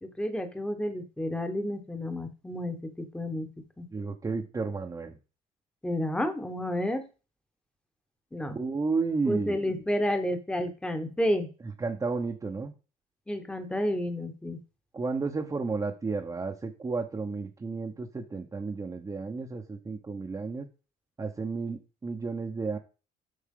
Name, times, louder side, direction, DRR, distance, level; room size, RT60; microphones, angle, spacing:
voice 1, 0.0-3.5 3.8-3.9 5.8-7.0 8.3-8.6 9.3-11.5 13.3-14.6, left 1 dB, 5° left, 7 dB, 1.2 m, -30 dB
voice 2, 3.9-5.2 8.5-9.6 11.8-12.7 14.9-20.6 21.2-22.8, right 4 dB, 20° right, 1 dB, 0.9 m, -32 dB
8.4 x 5.8 x 3.8 m, 0.33 s
cardioid pair, 110°, 17 cm